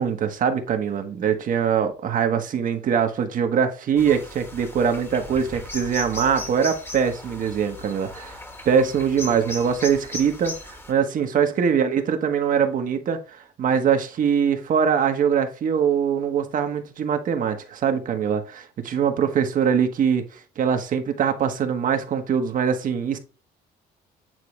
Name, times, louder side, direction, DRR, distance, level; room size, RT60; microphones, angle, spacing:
voice 1, 0.0-8.4 8.6-23.2, right 7 dB, 50° right, 1.3 m, -23 dB
sound 1, 4.0-10.9, left 2 dB, 15° left, 1.3 m, -37 dB
9.1 x 3.7 x 3.2 m
cardioid pair, 110°, 17 cm